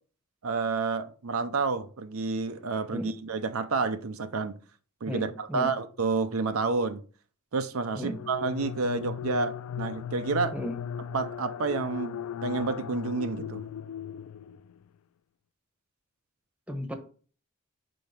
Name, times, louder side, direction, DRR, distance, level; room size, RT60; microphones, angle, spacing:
voice 1, 0.4-4.5 5.0-7.0 7.5-10.6 11.1-13.6, right 4 dB, 80° right, 0.6 m, -29 dB
voice 2, 5.1-5.7 7.9-8.2 10.5-10.8 16.7-16.9, equal, 5° right, 1.1 m, -34 dB
sound 1, 7.9-14.8, left 8 dB, 90° left, 0.3 m, -37 dB
5.2 x 4.6 x 5.8 m
head